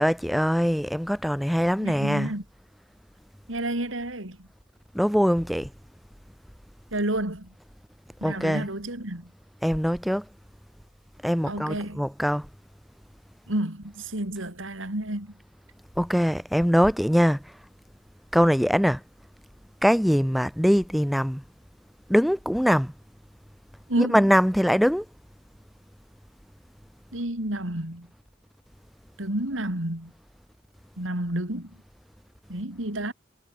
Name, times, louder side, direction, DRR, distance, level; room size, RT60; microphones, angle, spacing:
voice 1, 0.0-2.3 4.9-5.7 8.2-8.7 9.6-10.2 11.2-12.5 16.0-17.5 18.3-19.0 19.8-21.4 22.1-22.9 24.0-25.0, equal, ahead, 1.4 m, -22 dB
voice 2, 1.8-2.4 3.5-4.5 6.9-7.5 8.2-9.3 11.4-12.0 13.5-15.3 23.9-24.2 27.1-28.1 29.2-30.1 31.0-31.8 32.5-33.1, right 1 dB, 75° right, 4.0 m, -30 dB
head